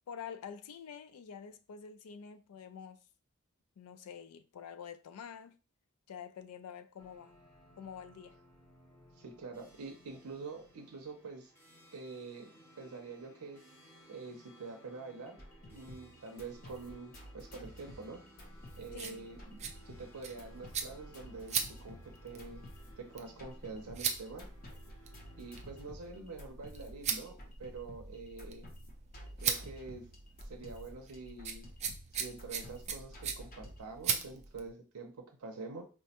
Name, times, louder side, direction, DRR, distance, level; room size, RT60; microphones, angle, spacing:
voice 1, 0.1-3.0 3.8-5.6 6.1-7.3 7.8-8.3 18.9-19.3, left 7 dB, 90° left, 0.4 m, -47 dB
sound 1, 7.0-25.9, equal, 10° left, 0.7 m, -60 dB
voice 2, 9.2-11.5 11.9-12.5 12.8-13.6 14.1-15.4 15.7-18.2 18.8-21.6 21.8-22.6 23.0-24.5 25.4-27.3 27.6-28.7 29.4-30.1 30.4-31.7 32.1-35.8, right 4 dB, 85° right, 0.6 m, -46 dB
sound 2, 15.3-33.8, equal, 40° left, 0.8 m, -52 dB
sound 3, 18.5-34.7, right 7 dB, 30° right, 0.3 m, -41 dB
4.5 x 2.1 x 2.8 m
head